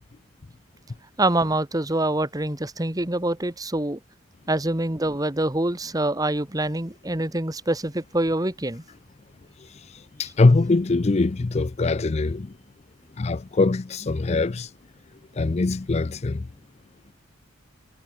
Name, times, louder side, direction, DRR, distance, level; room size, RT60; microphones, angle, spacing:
voice 1, 1.2-4.0 4.5-8.8, right 1 dB, 20° right, 1.4 m, -25 dB
voice 2, 9.7-12.5 13.2-14.7 15.4-16.5, left 3 dB, 30° left, 0.4 m, -22 dB
head